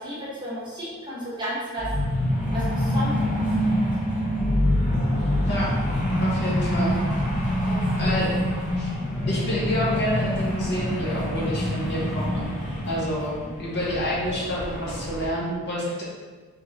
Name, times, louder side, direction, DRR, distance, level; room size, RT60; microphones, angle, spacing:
voice 1, 0.0-1.9 2.5-3.8 7.6-8.2, equal, 20° right, -8 dB, 1.1 m, -34 dB
sound 1, 1.8-15.3, left 1 dB, 35° left, 0.6 m, -26 dB
voice 2, 6.2-7.0 8.0-8.4 8.8-8.9 9.3-12.4 12.9-16.0, equal, 50° left, -5 dB, 1.0 m, -28 dB
3.7 x 3.6 x 3.0 m, 1.4 s
head